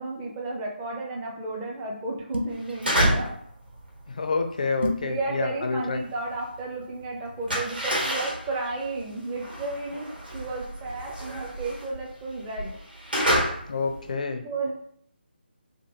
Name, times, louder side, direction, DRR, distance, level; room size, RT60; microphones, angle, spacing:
voice 1, 0.0-3.4 5.0-12.7 14.4-14.7, right 3 dB, 15° right, -1 dB, 0.4 m, -33 dB
sound 1, 2.3-2.7 4.8-5.1, left 1 dB, 80° right, 0.6 m, -29 dB
sound 2, 2.6-3.4 3.7-6.7 6.9-14.1, equal, 65° right, 1.4 m, -29 dB
voice 2, 4.1-6.0 13.7-14.4, left 4 dB, 45° left, 7 dB, 0.4 m, -28 dB
2.8 x 2.4 x 2.9 m, 0.65 s
figure-of-eight pair, 150°, 6 cm